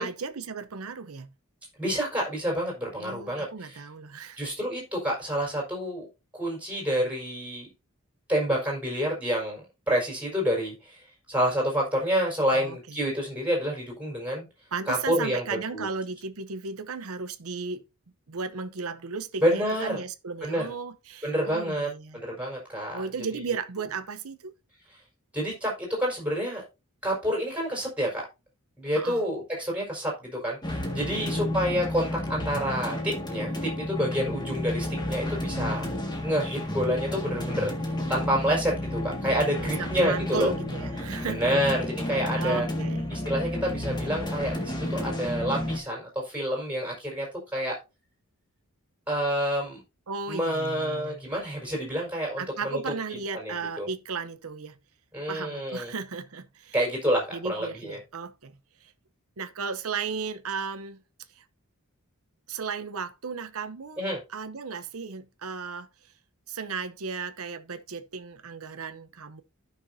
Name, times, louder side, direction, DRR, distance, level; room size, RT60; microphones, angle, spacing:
voice 1, 0.0-1.3 3.0-4.4 12.5-13.0 14.7-17.8 18.3-22.2 22.9-24.5 28.9-29.2 31.1-31.4 39.6-41.6 42.4-43.1 50.1-51.2 52.4-54.8 55.3-56.7 57.3-58.9 59.4-61.0 61.3-61.4 62.5-64.0 64.3-65.9 66.5-69.4, right 5 dB, 75° right, 0.8 m, -35 dB
voice 2, 1.8-3.8 4.4-6.1 6.3-7.7 8.3-9.6 9.9-14.5 14.9-15.9 19.4-20.0 20.4-20.7 21.2-23.0 24.9-25.0 25.3-26.6 27.0-28.2 28.8-35.9 36.2-40.5 41.2-42.7 43.1-47.3 47.5-47.8 49.1-49.8 50.3-52.9 53.3-53.9 55.1-55.9 56.7-58.0 64.0-64.2, equal, 5° right, 4.6 m, -28 dB
sound 1, 30.6-45.8, left 1 dB, 20° left, 1.8 m, -31 dB
14.5 x 5.9 x 2.7 m
head